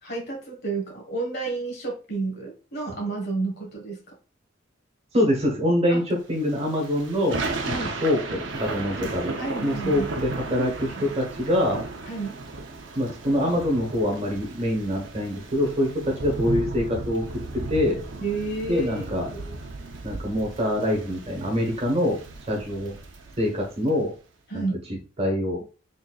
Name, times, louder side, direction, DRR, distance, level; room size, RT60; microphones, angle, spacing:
voice 1, 0.0-4.1 5.9-6.0 7.6-7.9 9.4-10.1 12.1-12.4 18.2-19.0 24.5-24.7, right 3 dB, 55° left, 0 dB, 1.6 m, -31 dB
voice 2, 5.1-7.4 7.6-9.3 9.6-11.8 12.9-17.2 17.5-18.0 18.7-19.5 20.0-22.2 22.5-22.9 23.4-24.1 24.5-24.6 25.2-25.6, left 1 dB, 35° right, 0 dB, 1.2 m, -25 dB
Thunder / Rain, 6.4-23.9, right 3 dB, 75° right, 0.7 m, -35 dB
4.0 x 3.6 x 2.4 m, 0.36 s
head